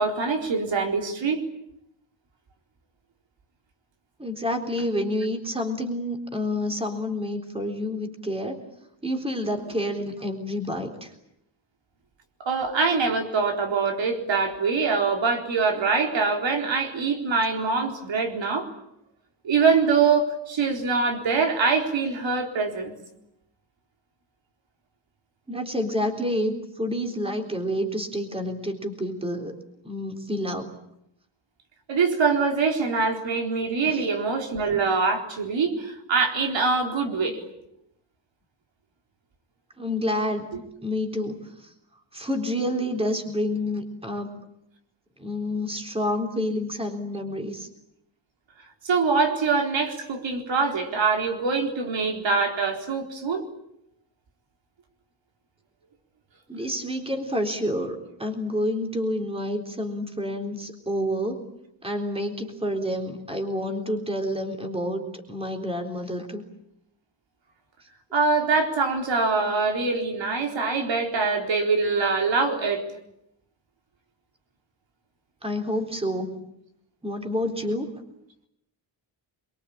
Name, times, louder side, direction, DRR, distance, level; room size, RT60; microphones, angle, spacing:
voice 1, 0.0-1.4 12.4-18.7 19.4-22.9 31.9-37.4 48.8-53.5 68.1-72.8, right 4 dB, 85° right, 3 dB, 4.2 m, -24 dB
voice 2, 4.2-8.6 9.0-11.1 25.5-29.5 29.8-30.7 33.8-34.0 39.8-40.5 40.8-41.7 42.1-44.3 45.2-47.7 56.5-61.5 61.8-66.4 75.4-76.4 77.0-77.9, left 1 dB, 15° right, 4 dB, 3.8 m, -29 dB
27.0 x 23.0 x 8.8 m, 0.79 s
wide cardioid pair, 150°, 44 cm